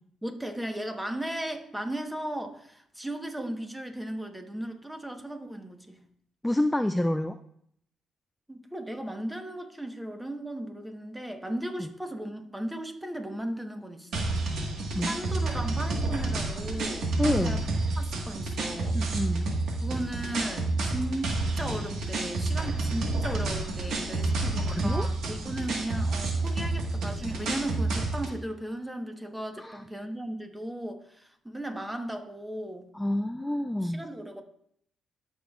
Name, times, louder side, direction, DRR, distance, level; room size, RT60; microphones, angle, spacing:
voice 1, 0.2-6.0 8.5-14.3 15.0-17.6 18.0-19.0 19.8-32.9 33.8-34.4, right 1 dB, 10° right, 5 dB, 1.1 m, -36 dB
voice 2, 6.4-7.4 11.8-11.9 14.9-15.1 17.2-17.6 18.9-19.5 24.7-25.1 29.6-29.8 32.9-34.0, left 1 dB, 10° left, 9 dB, 0.3 m, -28 dB
sound 1, 14.1-28.4, right 2 dB, 75° right, 1.5 m, -29 dB
13.0 x 6.4 x 2.4 m, 0.69 s
cardioid pair, 90°, 0 cm